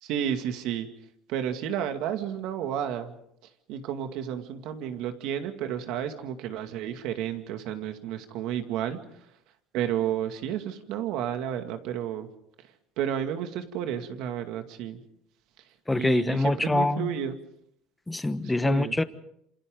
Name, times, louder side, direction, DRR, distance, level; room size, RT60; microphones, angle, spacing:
voice 1, 0.0-0.9 1.3-3.1 3.7-9.0 9.7-12.3 13.0-15.0 16.0-17.4 18.4-19.0, right 9 dB, 75° right, 2.3 m, -31 dB
voice 2, 15.9-17.1 18.1-19.0, left 2 dB, 10° left, 1.2 m, -25 dB
27.5 x 27.5 x 3.9 m
cardioid pair, 115°, 0 cm